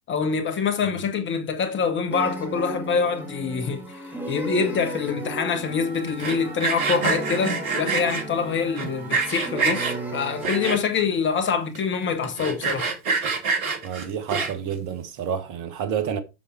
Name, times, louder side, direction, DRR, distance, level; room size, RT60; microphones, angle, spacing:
voice 1, 0.1-3.8 4.3-12.9, left 6 dB, 25° left, 1.3 m, -25 dB
sound 1, 2.1-10.8, right 1 dB, 5° right, 2.3 m, -35 dB
Wind instrument woodwind instrument, 5.6-10.2, right 4 dB, 75° right, 2.8 m, -44 dB
Sawing, 6.1-8.2 8.8-9.9 10.4-11.0 11.5-11.6 11.7-11.8 12.2-14.7, right 4 dB, 55° right, 2.9 m, -26 dB
voice 2, 13.8-16.2, right 8 dB, 40° right, 1.6 m, -29 dB
7.4 x 6.8 x 4.6 m
figure-of-eight pair, 90°, 48 cm